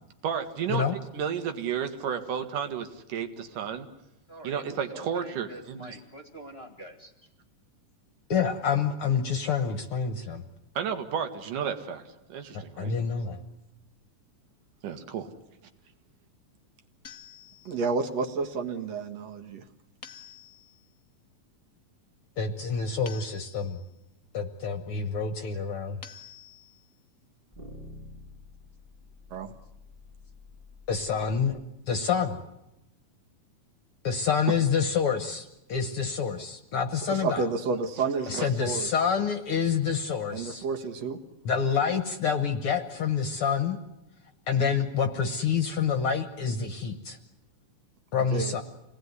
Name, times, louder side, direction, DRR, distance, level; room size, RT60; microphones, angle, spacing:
voice 1, 0.2-0.8 1.1-3.9 4.4-5.8 10.8-12.0 12.3-12.9 14.8-15.3 38.3-38.5, right 7 dB, 90° right, 7 dB, 3.3 m, -32 dB
voice 2, 4.3-7.3, right 1 dB, 25° left, 4 dB, 1.6 m, -45 dB
voice 3, 8.3-10.4 12.5-13.4 22.4-23.8 24.3-26.0 30.9-31.6 31.9-32.4 34.0-37.5 38.3-40.6 41.4-43.8 44.5-47.2 48.1-48.6, left 6 dB, 55° left, 9 dB, 1.7 m, -27 dB
sound 1, 17.0-18.0 20.0-20.9 23.1-24.0 26.0-26.9, left 8 dB, 75° left, 0.8 m, -48 dB
voice 4, 17.7-19.6 29.3-29.5 37.1-38.9 40.3-41.2 48.2-48.6, right 4 dB, 60° right, 4 dB, 2.5 m, -30 dB
sound 2, 27.5-31.6, left 2 dB, 25° right, 1.3 m, -49 dB
27.0 x 18.5 x 9.6 m, 0.91 s
omnidirectional pair, 3.6 m